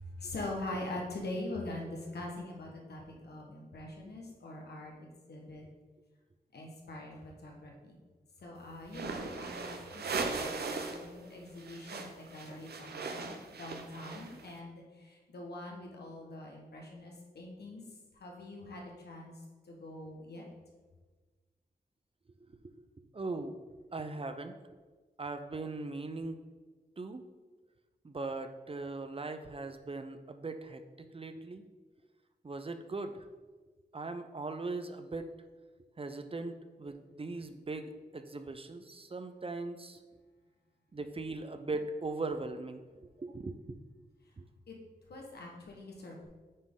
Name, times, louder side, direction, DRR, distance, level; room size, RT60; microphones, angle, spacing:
voice 1, 0.0-5.6 6.5-8.0 8.4-17.8 18.1-20.4 44.7-44.8 45.1-46.3, left 2 dB, 80° left, -1 dB, 1.4 m, -43 dB
sound 1, 8.9-11.1 11.3-14.5, right 4 dB, 75° right, 0.7 m, -38 dB
voice 2, 22.6-23.6 23.9-24.6 25.2-26.4 27.0-27.2 28.0-31.6 32.4-33.2 33.9-35.3 36.0-40.0 40.9-42.8 43.2-43.8 44.4-44.5, right 3 dB, 35° right, 8 dB, 0.6 m, -39 dB
9.3 x 3.9 x 3.7 m, 1.3 s
cardioid pair, 45°, 17 cm